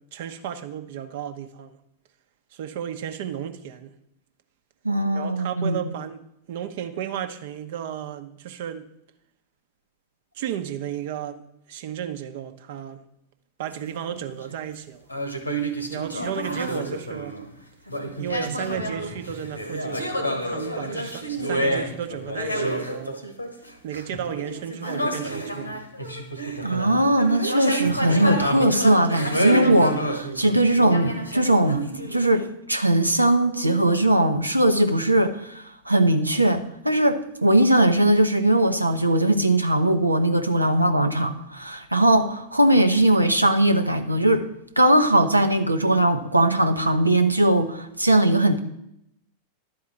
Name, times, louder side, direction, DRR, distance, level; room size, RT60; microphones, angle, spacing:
voice 1, 0.0-1.8 2.5-3.9 5.1-6.2 6.5-8.8 10.3-11.4 11.7-13.0 13.6-15.1 15.9-17.4 18.2-23.2 23.8-25.8, right 9 dB, 55° right, 0.9 m, -33 dB
voice 2, 4.8-5.8 26.6-44.5 44.8-48.6, right 1 dB, 85° right, 0.8 m, -20 dB
sound 1, 13.7-14.5 15.1-17.6 17.9-32.2, right 1 dB, 90° left, 1.2 m, -29 dB
11.5 x 4.8 x 7.7 m
figure-of-eight pair, 90°, 0 cm